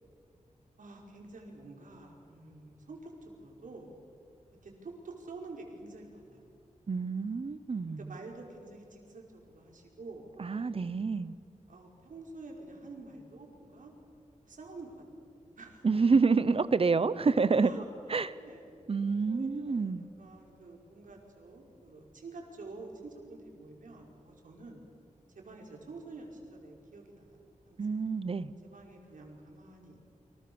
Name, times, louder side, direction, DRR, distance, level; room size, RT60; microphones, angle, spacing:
voice 1, 0.8-3.9 4.6-6.4 8.0-10.3 11.7-13.9 14.4-15.8 17.6-17.9 18.3-18.8 19.2-24.9 25.3-28.0 28.6-30.0, right 3 dB, 90° right, 1 dB, 5.4 m, -48 dB
voice 2, 6.9-8.1 10.4-11.3 15.8-17.7 18.1-18.3 18.9-20.1 27.8-28.5, right 4 dB, 45° right, 15 dB, 1.0 m, -28 dB
29.5 x 25.5 x 7.1 m, 2.5 s
wide cardioid pair, 115°, 13 cm